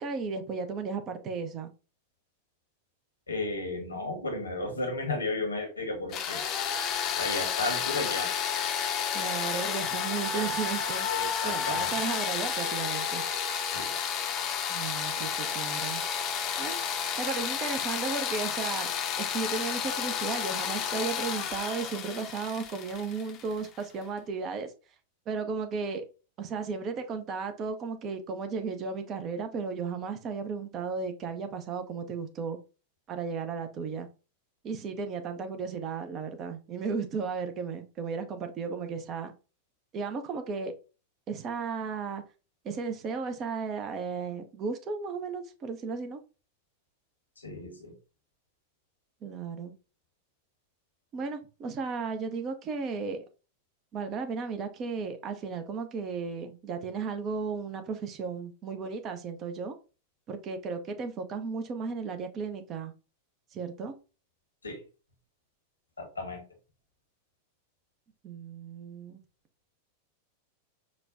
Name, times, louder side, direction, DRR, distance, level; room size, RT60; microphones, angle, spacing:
voice 1, 0.0-1.7 9.1-11.1 11.4-13.2 14.7-16.0 16.6-18.9 19.2-24.7 25.3-26.0 26.4-32.6 33.1-34.1 34.6-39.3 39.9-40.7 41.3-42.2 42.6-46.2 49.2-49.7 51.1-53.2 53.9-59.8 60.3-62.9 63.5-63.9 68.2-69.2, right 5 dB, 30° right, 0.6 m, -34 dB
voice 2, 3.3-6.5 7.2-8.3 10.3-10.5 11.1-12.0 13.7-13.9 15.2-15.3 47.4-47.9 64.6-64.8 66.0-66.4, left 2 dB, 75° left, 1.0 m, -34 dB
sound 1, 6.1-23.8, left 7 dB, 35° left, 0.6 m, -31 dB
5.0 x 2.2 x 2.5 m
figure-of-eight pair, 90°, 0 cm